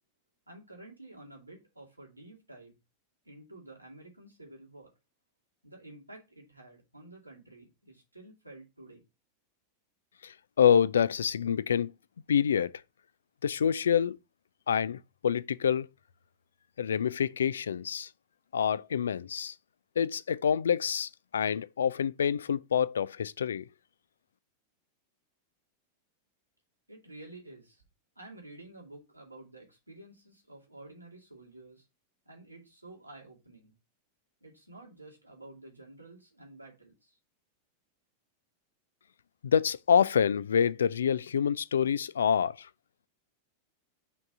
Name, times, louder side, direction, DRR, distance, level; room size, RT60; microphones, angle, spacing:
voice 1, 0.5-2.8 3.2-4.9 5.6-9.0 26.9-27.8 28.2-31.9 32.3-33.7 34.4-37.2, right 2 dB, 85° right, 2.4 m, -51 dB
voice 2, 10.2-11.9 12.3-12.7 13.4-14.2 14.7-15.9 16.8-18.1 18.5-19.5 20.0-23.6 39.4-42.7, left 8 dB, 65° left, 0.3 m, -27 dB
5.8 x 3.9 x 5.9 m
figure-of-eight pair, 90°, 0 cm